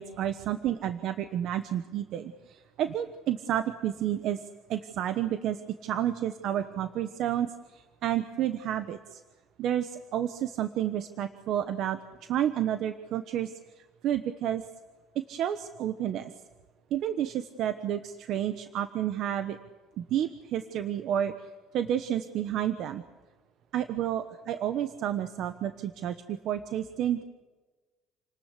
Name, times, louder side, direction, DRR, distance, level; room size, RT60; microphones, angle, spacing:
voice 1, 0.0-4.4 4.7-9.2 9.6-13.6 14.0-14.6 15.1-16.3 16.9-19.6 20.0-23.0 23.7-27.2, right 10 dB, 50° right, 10 dB, 1.1 m, -30 dB
29.0 x 20.0 x 8.2 m, 1.3 s
cardioid pair, 170°, 0 cm